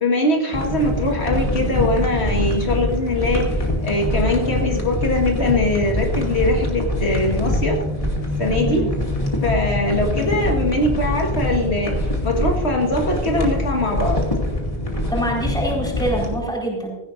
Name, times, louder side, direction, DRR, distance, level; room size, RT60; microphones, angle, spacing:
voice 1, 0.0-7.8 8.4-8.9 9.4-14.2, left 1 dB, 75° left, 1 dB, 1.9 m, -22 dB
sound 1, 0.5-16.3, left 1 dB, 30° left, 2.4 m, -24 dB
voice 2, 15.1-17.0, right 1 dB, 5° left, -3 dB, 4.3 m, -25 dB
16.5 x 15.5 x 2.6 m, 1.0 s
omnidirectional pair, 1.1 m